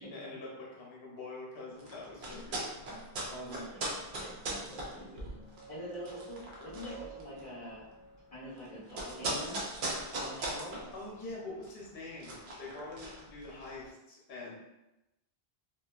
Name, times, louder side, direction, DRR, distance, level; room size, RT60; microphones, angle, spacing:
voice 1, 0.0-2.7 10.3-10.4 10.9-14.6, left 2 dB, 70° left, -4 dB, 0.9 m, -45 dB
sound 1, 1.7-13.9, right 1 dB, 60° right, 0.7 m, -40 dB
voice 2, 3.3-5.3 5.7-7.9 8.3-9.6 10.2-10.9, equal, 40° left, -10 dB, 0.8 m, -45 dB
sound 2, 5.2-9.3, right 5 dB, 85° right, 0.9 m, -53 dB
2.6 x 2.3 x 2.3 m, 0.95 s
omnidirectional pair, 1.1 m